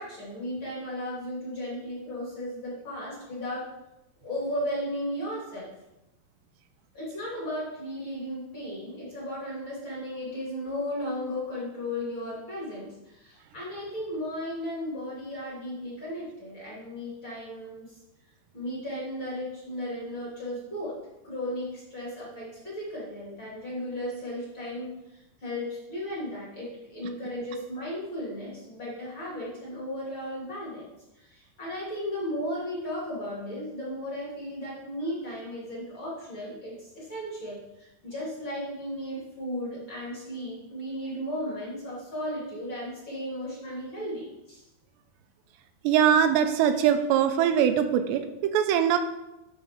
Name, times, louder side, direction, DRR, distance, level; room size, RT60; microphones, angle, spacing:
voice 1, 0.0-3.7 4.2-5.7 6.9-18.0 18.5-21.0 21.2-30.9 31.1-44.6, left 1 dB, 35° left, -7 dB, 2.6 m, -35 dB
voice 2, 45.8-49.0, right 9 dB, 85° right, 7 dB, 2.8 m, -22 dB
11.0 x 5.2 x 3.6 m, 0.94 s
omnidirectional pair, 4.9 m